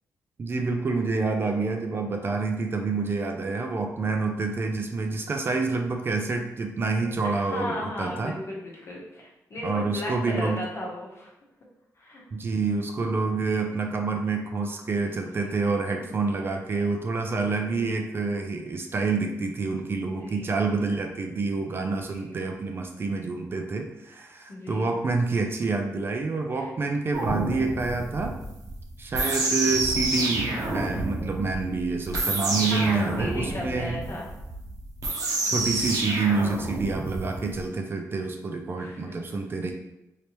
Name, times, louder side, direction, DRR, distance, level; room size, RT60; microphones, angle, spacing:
voice 1, 0.4-8.3 9.6-10.6 12.3-28.4 29.0-34.0 35.4-39.7, right 3 dB, 35° right, 3 dB, 0.3 m, -28 dB
voice 2, 7.2-11.3 12.0-12.2 15.0-16.5 20.0-20.9 21.8-22.4 24.5-24.9 26.6-26.7 32.7-34.3 38.8-39.2, left 1 dB, 45° left, -3 dB, 0.9 m, -37 dB
sound 1, 27.1-37.6, right 2 dB, 65° right, 0.8 m, -29 dB
3.3 x 2.8 x 2.9 m, 0.90 s
cardioid pair, 125°, 7 cm